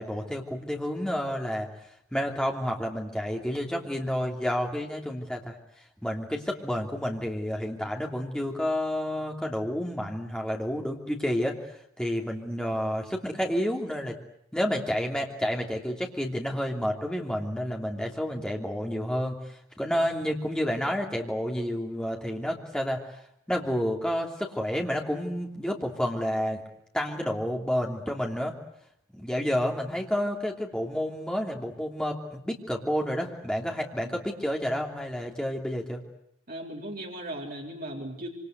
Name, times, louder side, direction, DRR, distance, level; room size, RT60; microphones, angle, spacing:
voice 1, 0.0-1.7 2.1-5.6 6.0-11.6 12.0-14.1 14.5-23.0 23.5-26.6 26.9-28.5 29.1-36.0, equal, 5° left, 0 dB, 3.0 m, -30 dB
voice 2, 36.5-38.3, right 1 dB, 40° right, -1 dB, 3.9 m, -37 dB
26.5 x 25.5 x 8.1 m, 0.73 s
head